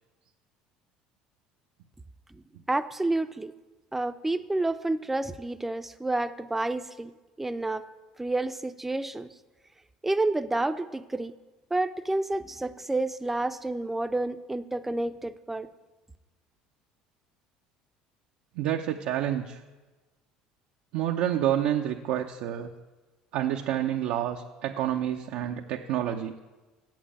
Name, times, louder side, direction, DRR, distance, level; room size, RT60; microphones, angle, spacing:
voice 1, 2.3-3.5 3.9-7.1 7.4-7.9 8.2-9.3 10.0-11.3 11.7-15.7, right 2 dB, 10° right, 11 dB, 0.5 m, -29 dB
voice 2, 18.6-19.6 20.9-22.7 23.3-26.4, right 11 dB, 75° right, 2 dB, 0.6 m, -28 dB
8.1 x 7.4 x 8.7 m, 1.2 s
supercardioid pair, 90°, 2 cm